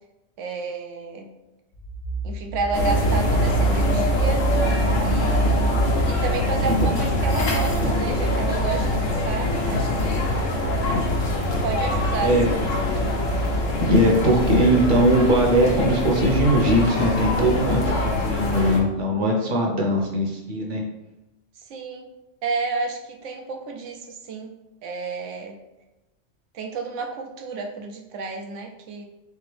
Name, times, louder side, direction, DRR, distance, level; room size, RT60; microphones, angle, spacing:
voice 1, 0.4-1.3 2.2-4.5 5.0-10.5 11.5-12.7 21.7-22.1 22.4-24.5 24.8-25.6 26.5-29.1, right 4 dB, 80° right, 3 dB, 1.0 m, -31 dB
sound 1, 1.7-7.8, right 4 dB, 50° left, 0.6 m, -30 dB
sound 2, 2.7-18.8, left 1 dB, 90° left, 1.2 m, -23 dB
voice 2, 13.9-20.8, equal, 45° right, 0 dB, 0.9 m, -20 dB
3.7 x 3.5 x 3.3 m, 0.98 s
omnidirectional pair, 1.3 m